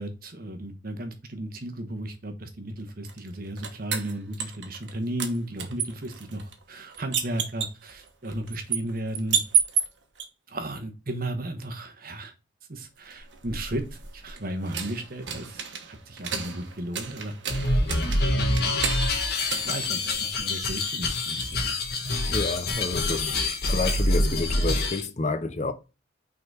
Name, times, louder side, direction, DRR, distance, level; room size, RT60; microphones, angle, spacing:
voice 1, 0.0-9.4 10.5-12.3 12.7-17.3 18.2-19.0 19.5-21.7, right 1 dB, 50° right, 1.2 m, -35 dB
sound 1, 3.0-4.9 5.2-10.2 13.0-20.5, right 7 dB, 70° right, 1.2 m, -32 dB
sound 2, 17.5-25.0, left 2 dB, 55° left, 1.5 m, -26 dB
voice 2, 22.3-25.7, left 3 dB, 40° left, 0.7 m, -29 dB
5.9 x 4.0 x 4.6 m
head